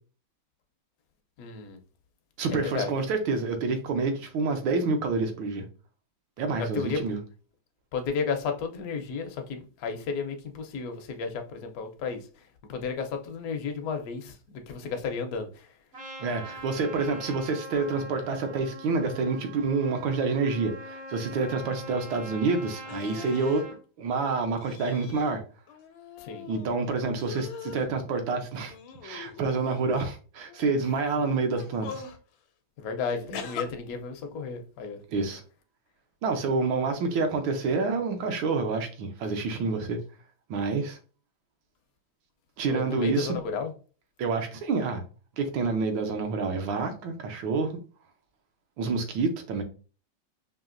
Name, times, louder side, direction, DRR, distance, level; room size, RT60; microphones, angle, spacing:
voice 1, 1.4-1.8 2.5-2.9 6.6-7.0 7.9-15.7 26.2-26.5 32.8-35.0 42.6-43.7, left 5 dB, 65° left, 0.9 m, -33 dB
voice 2, 2.4-5.6 6.4-7.2 16.2-23.7 24.0-25.4 26.5-28.7 29.0-32.0 35.1-35.4 36.2-40.0 40.5-41.0 42.6-43.4 44.2-45.0 45.4-47.8 48.8-49.6, right 4 dB, 80° right, 1.5 m, -28 dB
Trumpet, 15.9-23.8, equal, 65° right, 0.6 m, -42 dB
sound 1, 22.9-23.6 24.6-25.3 25.7-26.8 27.2-27.9 28.6-29.7 30.5-30.8 31.5-32.2 33.3-33.6, left 7 dB, 80° left, 1.4 m, -41 dB
5.2 x 2.8 x 2.5 m
omnidirectional pair, 2.2 m